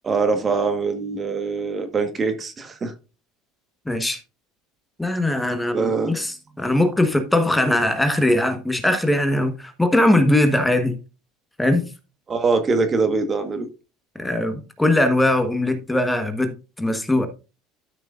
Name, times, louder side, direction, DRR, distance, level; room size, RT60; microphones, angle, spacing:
voice 1, 0.0-2.9 5.7-6.2 12.3-13.7, right 4 dB, 25° right, 1.4 m, -23 dB
voice 2, 3.8-4.2 5.0-11.0 11.6-11.9 14.2-17.3, left 1 dB, 5° left, 1.3 m, -20 dB
13.0 x 6.2 x 2.5 m
supercardioid pair, 120°, 0 cm